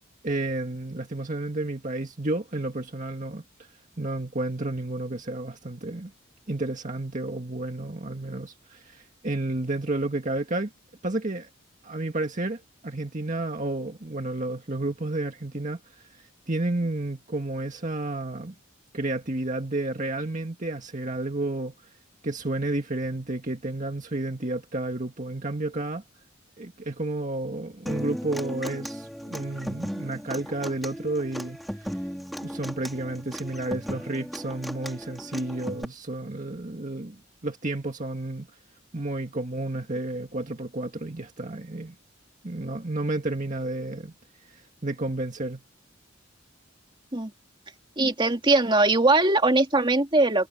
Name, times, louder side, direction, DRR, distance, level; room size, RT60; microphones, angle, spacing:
voice 1, 0.2-3.4 4.0-6.1 6.5-10.7 11.0-11.5 11.8-18.5 18.9-21.9 22.2-26.0 26.6-32.0 32.4-38.5 38.9-41.9 42.4-44.1 44.4-45.6, right 2 dB, 40° right, 1.9 m, -31 dB
Human voice / Acoustic guitar, 27.9-35.8, equal, ahead, 4.7 m, -36 dB
voice 2, 48.0-50.5, right 2 dB, 25° right, 2.5 m, -21 dB
head